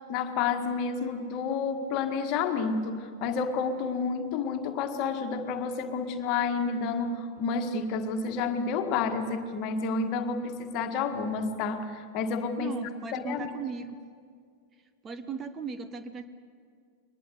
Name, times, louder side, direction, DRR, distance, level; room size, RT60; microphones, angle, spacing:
voice 1, 0.1-12.8 13.1-13.5, left 5 dB, 40° left, 7 dB, 1.7 m, -30 dB
voice 2, 12.6-14.0 15.0-16.3, right 5 dB, 25° right, 10 dB, 1.0 m, -37 dB
23.0 x 20.5 x 8.0 m, 2.1 s
figure-of-eight pair, 90°, 0 cm